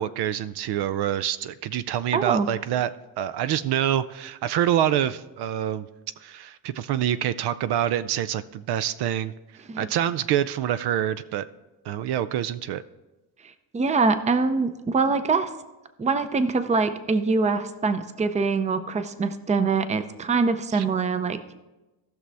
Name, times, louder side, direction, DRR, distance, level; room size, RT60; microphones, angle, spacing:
voice 1, 0.0-2.9 3.2-5.9 6.2-9.3 9.8-11.5 11.9-12.8 20.7-20.8, right 11 dB, 70° right, 14 dB, 0.5 m, -26 dB
voice 2, 2.1-2.5 9.7-9.9 13.7-15.5 16.0-21.4, right 4 dB, 15° right, 11 dB, 0.5 m, -24 dB
17.0 x 6.2 x 3.4 m, 1.1 s
cardioid pair, 120°, 41 cm